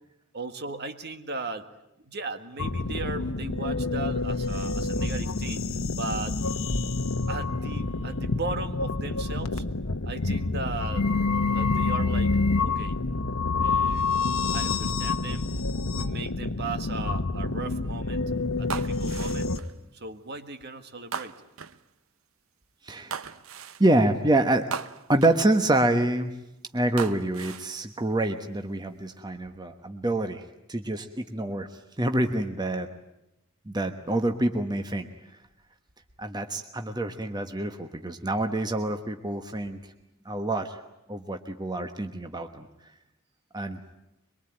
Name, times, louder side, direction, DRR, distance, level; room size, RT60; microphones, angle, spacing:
voice 1, 0.3-1.7 2.0-5.7 6.0-6.4 7.3-9.6 10.0-11.1 11.5-12.4 12.6-13.0 13.6-14.1 14.5-15.5 15.9-18.2 18.6-19.6 19.9-21.3, right 3 dB, 50° right, 8 dB, 1.8 m, -37 dB
sound 1, 2.6-19.6, left 3 dB, 85° left, 1.2 m, -28 dB
sound 2, 18.7-19.8 21.1-21.8 23.1-23.9 24.7-25.5 27.0-27.7 28.4-28.9, right 6 dB, 75° right, 0.9 m, -37 dB
voice 2, 22.8-23.2 23.8-24.6 25.1-26.3 26.7-30.4 30.7-31.7 32.0-32.9 33.7-35.1 36.2-39.8 40.2-40.8 41.1-42.7 43.5-43.8, right 1 dB, 20° right, 6 dB, 1.2 m, -26 dB
23.5 x 23.0 x 9.0 m, 0.88 s
head